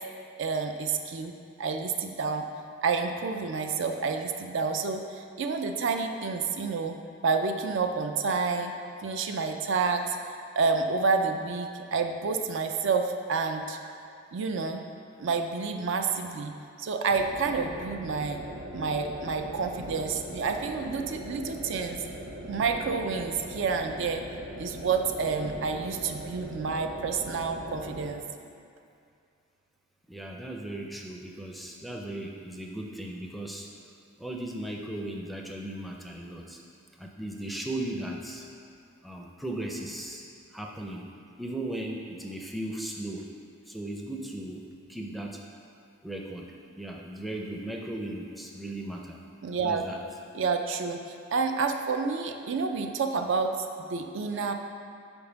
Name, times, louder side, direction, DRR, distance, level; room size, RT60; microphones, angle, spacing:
voice 1, 0.4-1.3 1.6-2.5 2.8-7.0 7.2-8.7 9.0-10.2 10.6-13.8 14.3-14.8 15.2-16.5 16.8-18.4 18.7-22.0 22.5-24.2 24.6-28.2 49.4-49.9 50.3-53.5 53.8-54.5, right 4 dB, 65° right, 5 dB, 0.4 m, -29 dB
sound 1, 17.1-28.2, right 1 dB, 40° right, 0.9 m, -41 dB
voice 2, 30.1-33.7 34.2-36.6 37.0-38.5 39.0-40.2 40.5-41.1 41.4-43.3 43.7-44.6 44.9-45.4 46.0-49.2 49.6-50.0, right 1 dB, ahead, 0 dB, 0.5 m, -37 dB
5.3 x 4.4 x 5.9 m, 2.5 s
head